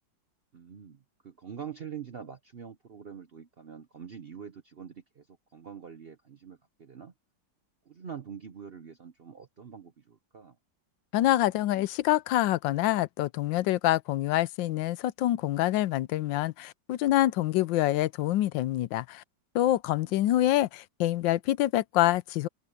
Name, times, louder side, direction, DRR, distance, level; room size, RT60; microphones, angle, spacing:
voice 1, 0.5-7.1 7.9-10.6 20.0-20.4, right 7 dB, 50° right, 0.7 m, -45 dB
voice 2, 11.1-19.2 19.5-22.5, left 14 dB, 85° left, 1.3 m, -26 dB
omnidirectional pair, 2.0 m